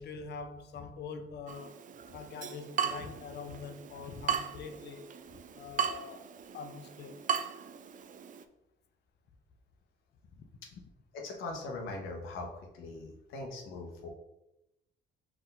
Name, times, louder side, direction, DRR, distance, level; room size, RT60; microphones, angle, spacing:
voice 1, 0.0-1.8 2.1-6.3 6.5-7.2 10.3-10.8, left 5 dB, 60° left, 0.5 m, -44 dB
Water tap faucet / Drip, 1.5-8.4, right 7 dB, 40° right, 0.4 m, -37 dB
voice 2, 11.2-12.5 12.7-14.1, left 2 dB, 90° left, 0.8 m, -40 dB
4.5 x 2.5 x 3.8 m
cardioid pair, 90°, 20 cm